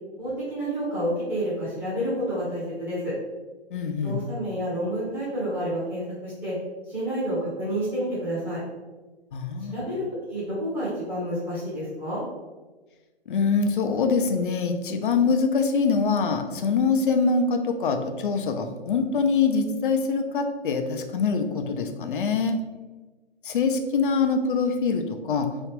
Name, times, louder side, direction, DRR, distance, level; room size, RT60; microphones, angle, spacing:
voice 1, 0.2-3.1 4.0-6.6 6.9-8.6 9.7-12.2, equal, 5° right, -11 dB, 0.8 m, -29 dB
voice 2, 3.7-4.2 9.3-9.8 13.3-22.6 23.4-25.5, left 5 dB, 55° left, 6 dB, 0.4 m, -24 dB
3.0 x 2.3 x 3.3 m, 1.2 s
figure-of-eight pair, 140°, 33 cm